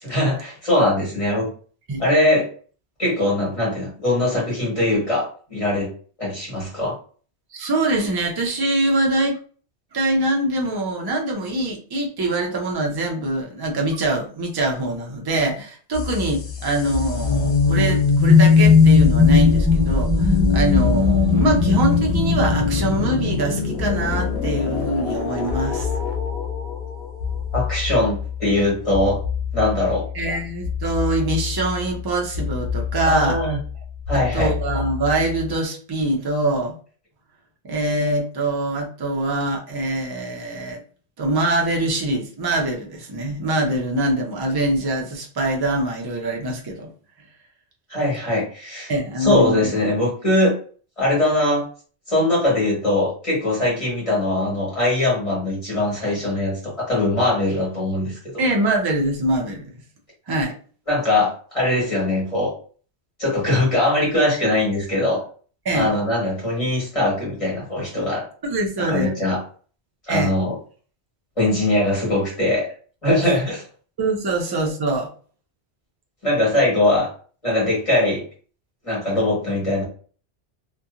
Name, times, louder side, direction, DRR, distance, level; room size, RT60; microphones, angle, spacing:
voice 1, 0.0-1.5 2.0-2.5 3.0-5.9 6.2-6.9 27.5-29.2 29.5-30.0 33.0-33.6 34.1-34.5 47.9-48.9 49.2-50.5 51.0-51.6 52.1-58.2 60.9-62.5 63.2-65.2 65.7-68.2 68.9-69.4 70.1-70.5 71.4-72.7 73.0-73.6 76.2-77.1 77.4-78.2 78.8-79.8, left 1 dB, 30° left, -5 dB, 1.4 m, -21 dB
voice 2, 7.5-9.4 9.9-25.9 30.1-33.4 34.3-36.7 37.6-40.8 41.2-46.9 48.9-49.7 58.4-59.8 60.3-60.5 65.6-65.9 68.4-69.1 70.1-70.3 74.0-75.1, right 2 dB, 35° right, 1 dB, 0.4 m, -23 dB
sound 1, 15.9-35.6, left 4 dB, 70° left, 0.9 m, -26 dB
sound 2, 16.7-23.3, left 5 dB, 5° right, 1.3 m, -17 dB
2.8 x 2.2 x 2.4 m, 0.42 s
omnidirectional pair, 1.1 m